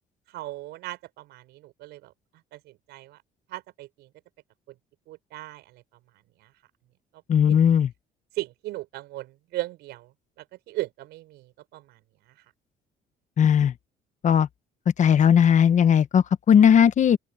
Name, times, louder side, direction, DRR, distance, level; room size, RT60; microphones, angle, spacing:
voice 1, 0.3-2.1 2.5-3.2 3.5-4.1 4.7-4.8 5.1-5.8 6.4-6.5 7.5-7.6 8.3-12.4, right 17 dB, 85° right, 6.4 m, -37 dB
voice 2, 7.3-7.9 13.4-13.7 14.2-14.5 15.0-17.2, left 8 dB, 45° left, 1.2 m, -18 dB
open air
cardioid pair, 110°, 17 cm